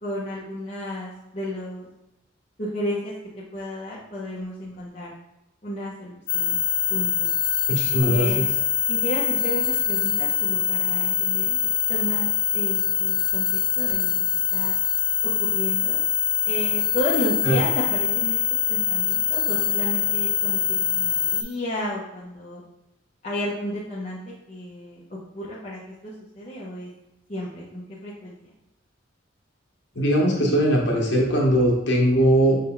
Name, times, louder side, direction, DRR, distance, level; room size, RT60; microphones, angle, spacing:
voice 1, 0.0-1.9 2.6-3.1 3.5-5.1 5.6-6.6 6.9-7.3 8.0-8.6 8.9-11.6 11.9-12.3 12.5-14.1 14.5-14.8 15.2-16.0 16.4-18.4 18.7-22.6 23.2-24.2 24.5-26.9 27.3-28.5, left 1 dB, 35° left, -8 dB, 0.7 m, -32 dB
sound 1, 6.3-21.4, left 8 dB, 85° left, 0.7 m, -23 dB
voice 2, 7.7-8.5 17.4-17.6 29.9-32.6, equal, 60° left, -3 dB, 1.1 m, -20 dB
5.6 x 2.2 x 3.7 m, 0.90 s
head